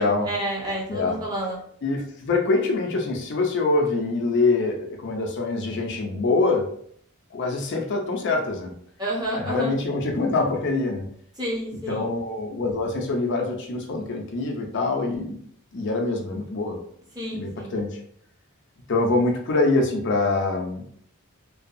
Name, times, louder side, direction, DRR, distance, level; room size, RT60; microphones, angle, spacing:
voice 1, 0.0-1.6 9.0-9.8 11.4-12.1 17.1-17.8, right 1 dB, 20° right, -4 dB, 0.7 m, -30 dB
voice 2, 1.8-6.6 7.3-8.7 9.3-11.1 11.9-15.4 15.7-16.8 17.3-18.0 18.9-20.8, left 3 dB, 50° left, 2 dB, 0.4 m, -24 dB
2.6 x 2.2 x 2.5 m, 0.62 s
head